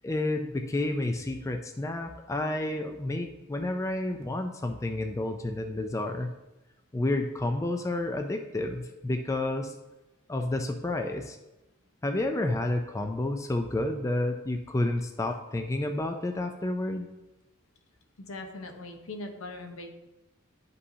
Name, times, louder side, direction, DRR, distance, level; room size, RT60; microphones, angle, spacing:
voice 1, 0.0-6.3 6.9-9.8 10.3-11.4 12.0-17.1, left 2 dB, 15° left, 5 dB, 0.4 m, -30 dB
voice 2, 18.2-19.9, left 2 dB, 75° left, 4 dB, 0.9 m, -40 dB
9.8 x 5.4 x 2.7 m, 1.0 s
head